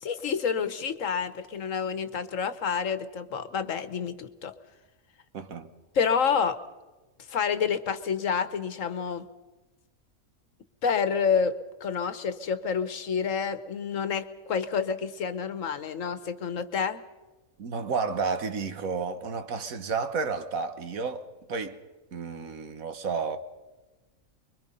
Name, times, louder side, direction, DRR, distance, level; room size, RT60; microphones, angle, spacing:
voice 1, 0.0-4.5 5.9-6.6 7.3-9.2 10.8-11.5 11.8-17.0, left 6 dB, 70° left, 1.4 m, -28 dB
voice 2, 5.3-5.7 17.6-21.8 22.1-23.4, right 5 dB, 85° right, 1.7 m, -31 dB
24.5 x 23.0 x 5.4 m
omnidirectional pair, 1.4 m